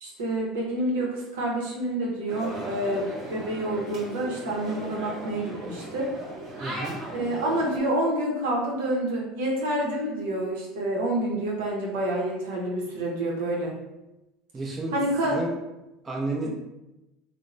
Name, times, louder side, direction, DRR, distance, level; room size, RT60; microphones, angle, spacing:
voice 1, 0.0-6.1 7.1-13.7 14.9-15.4, right 1 dB, 85° right, -2 dB, 0.7 m, -28 dB
sound 1, 2.3-7.8, right 1 dB, 55° right, 1.2 m, -37 dB
voice 2, 6.6-7.0 14.5-15.0 15.3-15.5 16.0-16.5, right 2 dB, 25° right, -1 dB, 0.6 m, -31 dB
2.9 x 2.1 x 2.5 m, 0.96 s
supercardioid pair, 90°, 0 cm